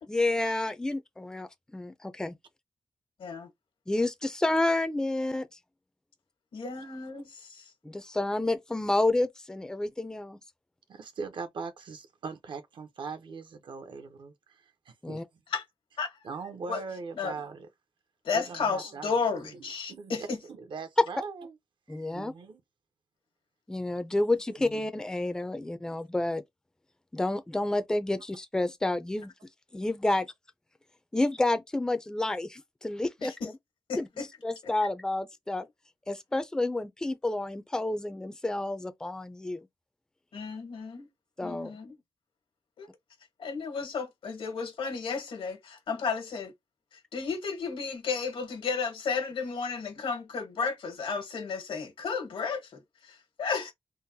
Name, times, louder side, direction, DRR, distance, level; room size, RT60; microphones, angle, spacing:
voice 1, 0.1-2.4 3.9-5.6 7.8-10.4 15.0-15.2 21.9-22.3 23.7-26.4 27.1-29.3 29.7-30.3 31.1-33.3 34.0-35.7 36.1-39.7 41.4-41.7, left 2 dB, 10° left, 0.4 m, -30 dB
voice 2, 6.5-7.6 15.5-15.6 16.0-16.1 16.7-16.8 17.1-17.3 18.2-20.4 33.2-33.5 33.9-34.3 40.3-41.1 41.4-41.9 42.8-42.9 43.4-46.5 47.1-53.7, left 5 dB, 85° left, 1.2 m, -33 dB
voice 3, 10.9-15.2 16.2-17.7 18.3-21.5 21.9-22.6 25.9-26.0, right 5 dB, 65° right, 0.7 m, -41 dB
3.8 x 2.1 x 2.7 m
wide cardioid pair, 135°, 9 cm